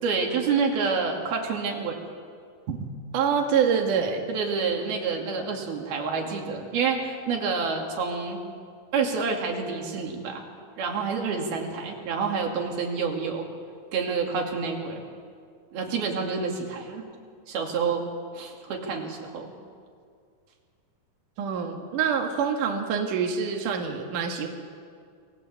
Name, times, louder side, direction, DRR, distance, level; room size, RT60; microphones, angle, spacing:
voice 1, 0.0-2.0 4.3-8.4 8.9-10.4 10.7-13.5 13.9-15.0 15.7-17.0 17.5-18.1 18.3-19.5, right 5 dB, 85° right, 1 dB, 4.7 m, -28 dB
voice 2, 3.1-4.2 21.4-24.5, right 6 dB, 65° right, 2 dB, 3.2 m, -25 dB
28.5 x 21.5 x 8.3 m, 2.2 s
omnidirectional pair, 4.2 m